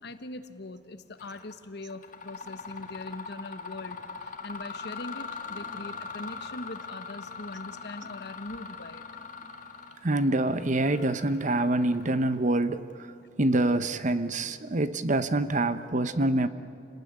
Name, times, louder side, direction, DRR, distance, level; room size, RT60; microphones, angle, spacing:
voice 1, 0.0-9.0, left 2 dB, 60° left, 10 dB, 1.3 m, -41 dB
Mechanisms, 1.2-1.5 1.9-12.4, left 4 dB, 45° left, 1.9 m, -41 dB
voice 2, 10.0-13.1 13.4-16.5, right 2 dB, 40° right, 12 dB, 0.9 m, -26 dB
28.0 x 19.0 x 9.7 m, 2.7 s
head